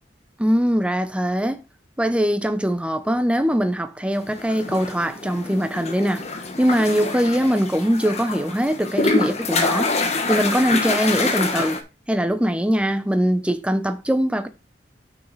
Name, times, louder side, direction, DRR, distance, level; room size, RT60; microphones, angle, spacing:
voice 1, 0.4-1.6 2.0-6.2 6.6-9.9 10.3-11.8 12.1-14.5, equal, 5° right, 0.8 m, -21 dB
sound 1, 4.3-11.8, left 3 dB, 40° left, 1.2 m, -26 dB
6.5 x 6.3 x 4.0 m
head